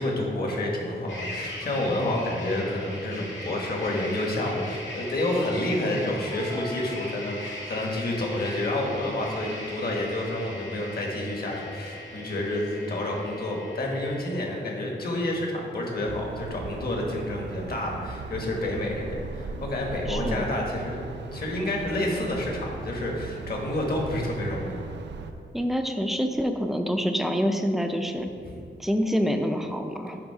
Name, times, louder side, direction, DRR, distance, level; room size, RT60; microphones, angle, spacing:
voice 1, 0.0-21.0 21.3-24.8 28.4-28.5, left 1 dB, 55° left, -1 dB, 1.4 m, -29 dB
sound 1, 1.1-14.4, left 1 dB, 85° left, 1.7 m, -39 dB
sound 2, 6.2-7.9, left 3 dB, 30° left, 0.9 m, -41 dB
sound 3, 16.1-25.3, right 4 dB, 70° right, 0.5 m, -38 dB
voice 2, 20.1-20.5 25.5-28.3 28.8-30.2, equal, ahead, 5 dB, 0.4 m, -26 dB
10.0 x 3.5 x 4.8 m, 2.4 s
wide cardioid pair, 175°, 19 cm